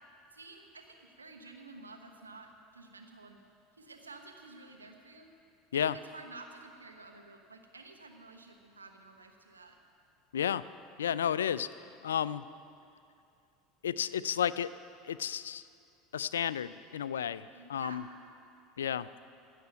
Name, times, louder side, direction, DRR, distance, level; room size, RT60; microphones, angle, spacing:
voice 1, 0.3-3.4 3.8-5.3 5.7-9.8 17.5-18.1, right 3 dB, 85° right, 3 dB, 1.2 m, -51 dB
voice 2, 10.3-10.6 11.0-11.7 12.0-12.4 13.8-14.7 15.0-15.6 16.1-18.0 18.8-19.1, left 9 dB, 75° left, 17 dB, 0.3 m, -32 dB
16.0 x 6.5 x 9.0 m, 2.5 s
figure-of-eight pair, 75°, 0 cm